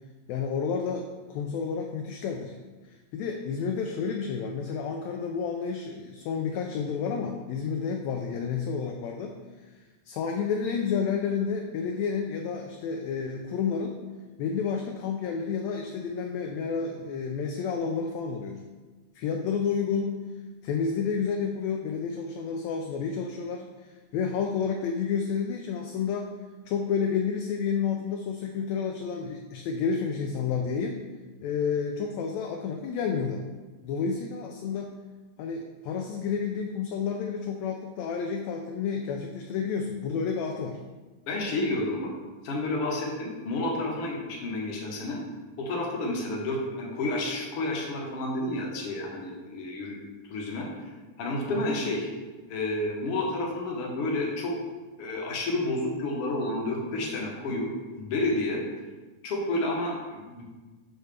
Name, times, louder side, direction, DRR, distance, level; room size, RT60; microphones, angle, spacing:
voice 1, 0.3-2.6 2.9-9.4 10.1-13.9 14.4-18.6 19.1-20.1 20.6-26.3 26.7-31.0 31.4-33.4 33.8-35.0 35.4-40.8, left 6 dB, 80° left, 2 dB, 1.7 m, -30 dB
voice 2, 41.3-42.1 42.4-45.2 45.6-50.0 50.3-50.9 51.2-52.1 52.5-54.5 55.0-58.6 59.2-60.4, left 2 dB, 60° left, -2 dB, 1.9 m, -30 dB
6.4 x 6.3 x 3.3 m, 1.3 s
omnidirectional pair, 3.3 m